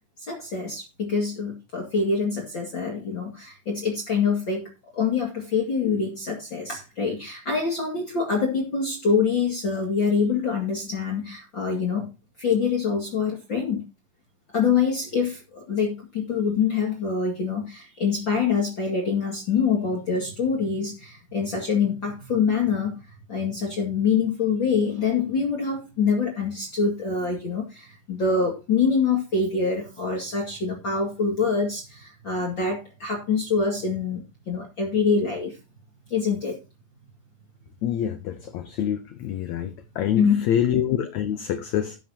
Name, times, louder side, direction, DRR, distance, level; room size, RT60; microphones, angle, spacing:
voice 1, 0.3-12.1 12.4-13.8 14.5-23.0 23.3-35.6 36.1-36.6 40.1-40.5, left 5 dB, 35° left, 2.6 m, -25 dB
voice 2, 37.8-42.0, left 10 dB, 70° left, 1.8 m, -26 dB
17.0 x 7.6 x 2.9 m
omnidirectional pair, 4.0 m